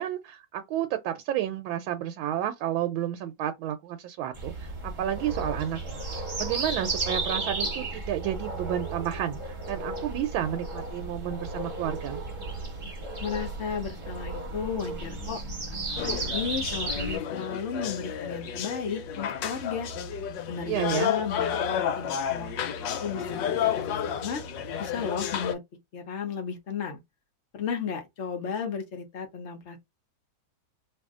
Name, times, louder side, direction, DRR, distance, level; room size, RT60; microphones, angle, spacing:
voice 1, 0.0-12.2 20.7-21.1, right 11 dB, 85° right, 1.3 m, -31 dB
sound 1, 4.3-17.2, right 2 dB, 30° right, 1.1 m, -34 dB
voice 2, 13.2-15.4 15.7-19.9 20.5-24.4 24.8-25.6 25.9-27.0 27.5-29.8, left 6 dB, 55° left, 0.7 m, -34 dB
sound 2, 16.0-25.5, left 8 dB, 70° left, 1.2 m, -31 dB
2.9 x 2.6 x 3.5 m
omnidirectional pair, 2.2 m